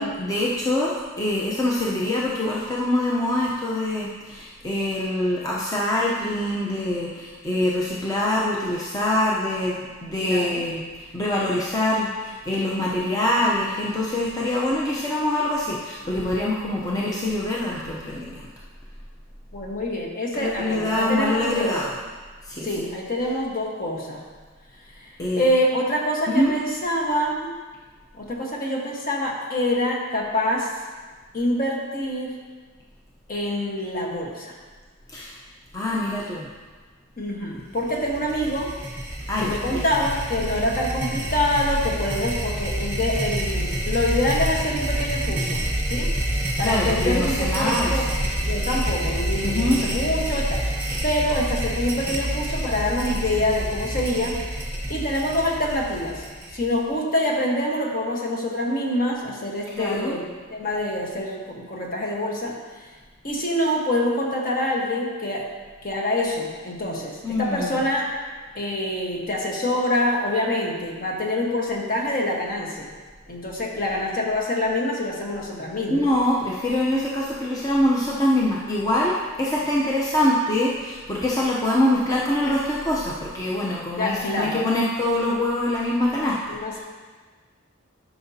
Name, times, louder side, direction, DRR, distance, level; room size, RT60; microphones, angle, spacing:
voice 1, 0.0-18.4 20.4-21.9 22.4-22.8 25.2-25.5 26.3-26.5 35.1-35.4 35.7-36.5 39.3-39.8 46.6-48.1 49.4-49.8 59.7-60.2 67.2-67.8 75.9-86.8, left 1 dB, 15° left, -5 dB, 0.7 m, -24 dB
voice 2, 10.2-10.6 19.5-21.8 22.6-24.2 25.0-27.6 28.1-30.8 31.3-32.4 33.3-34.6 37.2-38.7 39.4-46.1 46.6-50.7 51.0-54.4 54.9-56.2 56.5-62.9 63.2-65.5 65.8-68.1 68.5-72.9 73.3-76.0 84.0-84.7 86.5-86.8, left 1 dB, 45° left, -1 dB, 1.3 m, -26 dB
sound 1, 37.8-56.8, right 1 dB, 10° right, 1.0 m, -28 dB
12.0 x 5.9 x 2.8 m, 1.4 s
head